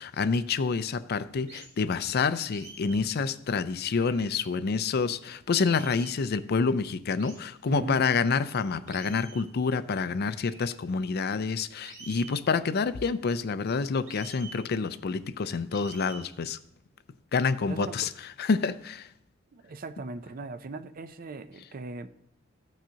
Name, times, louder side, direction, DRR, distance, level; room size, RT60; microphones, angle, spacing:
voice 1, 0.0-16.6 17.3-18.1 18.4-19.1, left 5 dB, 55° left, 0.4 m, -28 dB
sound 1, 1.5-1.8 2.5-3.1 4.0-4.4 5.6-6.2 7.2-7.5 8.9-9.5 10.3-10.7 11.8-12.4 14.1-14.6 15.7-16.3, right 4 dB, 80° right, 3.1 m, -48 dB
voice 2, 7.7-8.0 17.7-18.1 19.5-22.1, right 3 dB, 45° right, 0.5 m, -39 dB
15.0 x 6.1 x 2.8 m
head